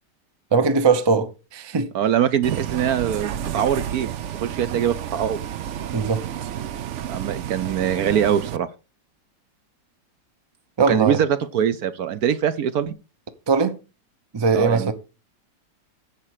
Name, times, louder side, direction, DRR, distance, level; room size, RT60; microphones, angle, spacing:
voice 1, 0.5-1.9 5.9-6.2 10.8-11.2 13.5-13.8 14.3-14.9, right 4 dB, 30° right, 0.4 m, -20 dB
voice 2, 1.9-4.1 4.4-5.4 7.1-8.7 10.8-12.9 14.5-14.9, right 9 dB, 65° right, 1.0 m, -23 dB
Bus, 2.4-8.6, right 10 dB, 85° right, 0.6 m, -31 dB
9.9 x 7.4 x 4.8 m
omnidirectional pair, 2.0 m